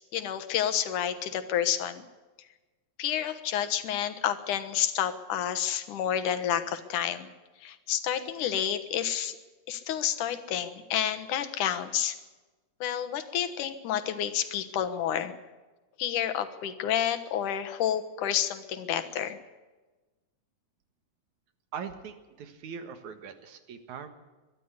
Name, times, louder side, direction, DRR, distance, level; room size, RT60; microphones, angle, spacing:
voice 1, 0.0-2.0 3.0-7.3 7.6-9.4 9.7-12.2 12.8-15.3 16.0-19.4, left 10 dB, 85° left, 10 dB, 2.8 m, -29 dB
voice 2, 21.7-24.1, right 6 dB, 70° right, 9 dB, 2.9 m, -41 dB
22.5 x 12.0 x 9.7 m, 1.2 s
omnidirectional pair, 3.5 m